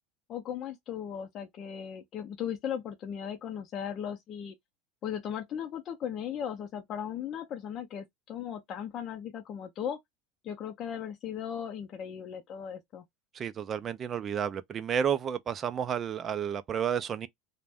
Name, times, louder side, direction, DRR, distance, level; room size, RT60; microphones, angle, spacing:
voice 1, 0.3-4.5 5.0-10.0 10.4-13.0, left 9 dB, 40° left, 0.5 m, -37 dB
voice 2, 13.3-17.3, right 8 dB, 30° right, 0.3 m, -31 dB
2.5 x 2.1 x 3.4 m
supercardioid pair, 130°, 0 cm